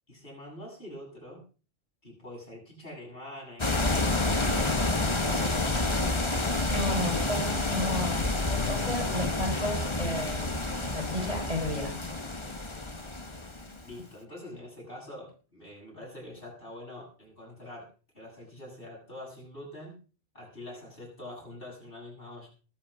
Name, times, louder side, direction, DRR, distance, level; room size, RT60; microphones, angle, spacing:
voice 1, 0.1-1.4 2.0-4.9 13.8-17.9 18.1-19.9 20.3-22.5, left 1 dB, 60° left, -2 dB, 8.1 m, -45 dB
sound 1, 3.6-14.0, left 2 dB, 25° left, 1.4 m, -29 dB
voice 2, 6.7-8.2 8.7-10.5 10.8-12.0, left 1 dB, 35° right, 1 dB, 5.8 m, -33 dB
21.5 x 8.4 x 5.0 m, 0.37 s
omnidirectional pair, 1.1 m